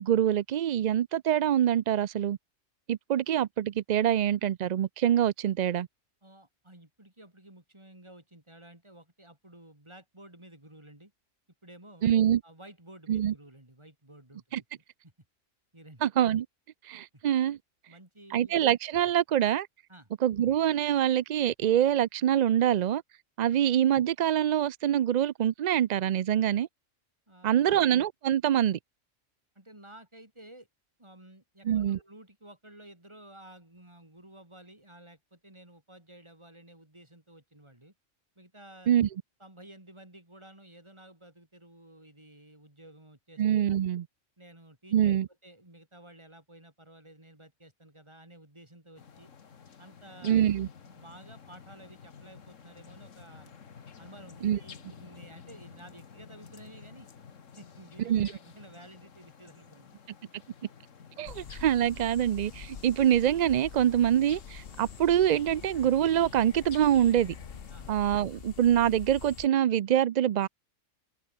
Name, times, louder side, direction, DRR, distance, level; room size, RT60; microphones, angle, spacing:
voice 1, 0.0-2.4 2.9-5.9 12.0-12.4 13.1-13.3 14.5-14.6 16.0-16.5 16.8-17.6 18.3-19.7 20.2-23.0 23.4-26.7 27.4-28.8 31.6-32.0 38.9-39.1 43.4-44.1 44.9-45.3 50.2-50.7 54.4-54.6 58.1-58.3 61.2-67.3 67.9-70.5, right 10 dB, 75° right, 0.4 m, -25 dB
voice 2, 6.2-11.1 11.6-12.1 12.4-15.1 15.7-16.0 17.1-17.2 17.9-18.6 19.9-20.1 27.3-27.9 29.6-30.7 31.0-37.9 38.4-38.9 39.4-43.9 44.4-49.3 49.8-50.5 50.9-53.5 54.0-57.1 57.6-59.9 67.7-67.9, right 1 dB, 20° right, 4.0 m, -53 dB
sound 1, 49.0-68.2, left 6 dB, 80° left, 1.9 m, -51 dB
sound 2, 61.3-69.5, left 7 dB, 50° left, 1.2 m, -46 dB
omnidirectional pair, 1.3 m